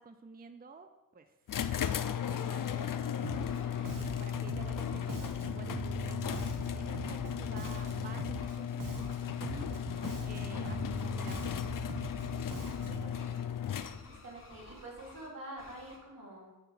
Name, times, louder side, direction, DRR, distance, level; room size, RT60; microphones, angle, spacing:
voice 1, 0.0-1.3 1.9-9.9 10.2-12.0 13.8-14.2, right 4 dB, 30° right, 8 dB, 0.5 m, -52 dB
sound 1, 1.5-14.3, left 9 dB, 70° left, 0.5 m, -36 dB
sound 2, 2.3-2.9 3.3-4.4 4.8-5.1 6.2-6.6 7.7-8.0 8.3-8.6 8.9-10.2 10.6-12.8 13.1-13.4 13.7-15.3 15.6-16.0, left 2 dB, 40° left, 1.9 m, -54 dB
Bass guitar, 3.2-3.6 3.8-8.5 8.8-13.1, right 3 dB, 70° right, 1.0 m, -41 dB
voice 2, 12.8-13.5 14.1-16.5, right 1 dB, 85° right, -4 dB, 3.0 m, -47 dB
8.1 x 4.4 x 6.8 m, 1.1 s
wide cardioid pair, 100°, 33 cm